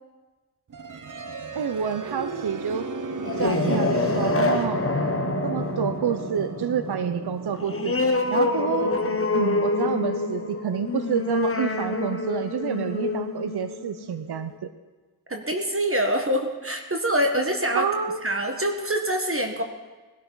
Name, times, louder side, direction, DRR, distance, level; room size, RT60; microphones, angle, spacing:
sound 1, 0.7-12.6, right 4 dB, 50° right, 1.0 m, -35 dB
voice 1, 1.5-2.9 3.4-4.8 5.4-7.9 8.3-9.0 9.3-14.7 17.7-18.2, right 7 dB, 70° right, 9 dB, 0.7 m, -28 dB
sound 2, 3.1-14.3, left 3 dB, 35° left, 1.2 m, -26 dB
voice 2, 15.3-17.9 18.2-19.6, equal, 35° right, 4 dB, 1.4 m, -25 dB
20.5 x 12.5 x 4.0 m, 1.2 s
cardioid pair, 50°, 40 cm